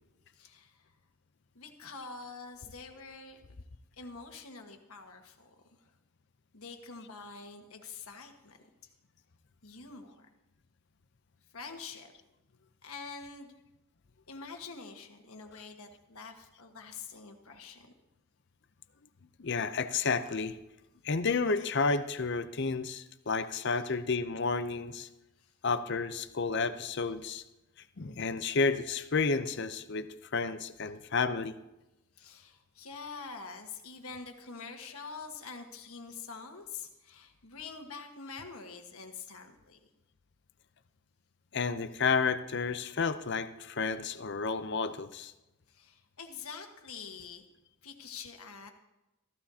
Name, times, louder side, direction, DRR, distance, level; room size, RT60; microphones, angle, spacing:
voice 1, 0.3-0.9 1.5-3.4 4.0-5.5 5.8-5.9 6.5-8.6 9.6-10.3 11.5-12.1 12.8-13.5 14.3-17.9 25.4-25.5 32.1-39.8 45.7-47.4 47.8-48.7, left 5 dB, 85° left, 4 dB, 1.5 m, -46 dB
voice 2, 19.4-20.6 21.0-25.1 25.6-27.4 28.0-31.5 41.5-45.3, left 4 dB, 55° left, 11 dB, 0.6 m, -31 dB
15.0 x 14.5 x 2.8 m, 0.96 s
head